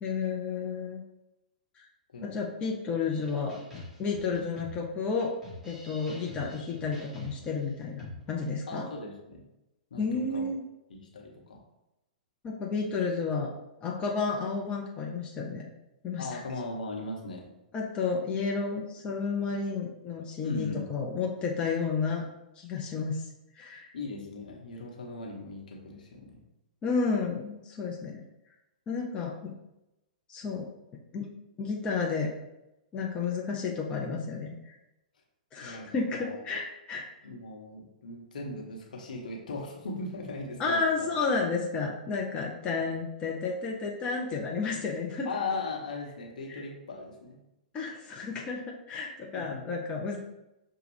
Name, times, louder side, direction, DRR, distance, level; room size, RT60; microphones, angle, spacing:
voice 1, 0.0-1.0 1.8-1.9 2.2-3.6 4.0-5.4 5.6-8.8 10.0-10.6 12.4-13.5 13.8-15.7 16.0-16.4 17.7-22.2 22.6-23.2 23.6-23.9 26.8-28.2 28.9-29.3 30.3-30.7 31.1-31.3 31.6-32.3 32.9-34.8 35.5-37.1 40.6-45.3 46.5-46.6 47.7-50.2, left 4 dB, 25° left, -1 dB, 0.6 m, -31 dB
sound 1, 3.1-8.5, left 1 dB, 10° right, 1.6 m, -47 dB
voice 2, 8.7-9.4 9.9-10.5 10.9-11.6 16.2-17.5 20.4-20.9 23.9-26.4 35.6-36.4 37.2-41.1 41.7-41.8 45.2-47.4 49.3-49.6 50.1-50.2, left 3 dB, 70° left, 0 dB, 1.0 m, -38 dB
6.1 x 2.3 x 3.3 m, 0.92 s
figure-of-eight pair, 110°, 5 cm